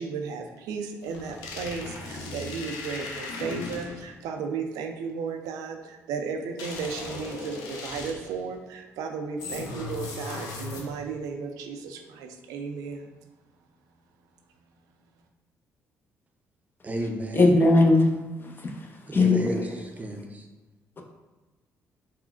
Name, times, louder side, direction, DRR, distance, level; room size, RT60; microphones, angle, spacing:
voice 1, 0.0-13.1, right 5 dB, 85° right, 4 dB, 0.3 m, -34 dB
sound 1, 1.0-4.2 6.6-8.4 9.4-11.1, left 3 dB, 85° left, 0.4 m, -37 dB
voice 2, 16.8-17.6 19.1-20.5, right 1 dB, 25° right, 3 dB, 0.5 m, -33 dB
voice 3, 17.3-18.1 19.1-19.5, left 2 dB, 35° left, 3 dB, 0.5 m, -18 dB
3.6 x 2.1 x 2.3 m, 1.1 s
supercardioid pair, 65°, 6 cm